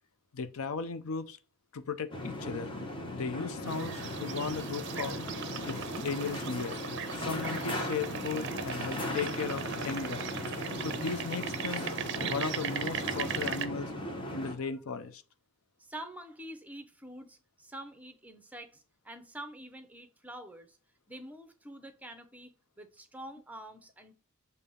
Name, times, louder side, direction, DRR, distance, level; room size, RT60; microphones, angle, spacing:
voice 1, 0.3-1.4 1.7-2.7 3.1-5.2 5.7-6.8 7.1-10.3 10.8-11.9 12.3-13.9 14.3-15.2, left 5 dB, 80° left, 0.6 m, -36 dB
sound 1, 2.1-14.5, left 1 dB, 20° left, 0.9 m, -37 dB
sound 2, 3.7-13.7, right 8 dB, 50° right, 0.5 m, -39 dB
voice 2, 15.8-20.8 21.1-24.1, right 1 dB, 5° right, 0.6 m, -47 dB
6.9 x 2.8 x 5.5 m
head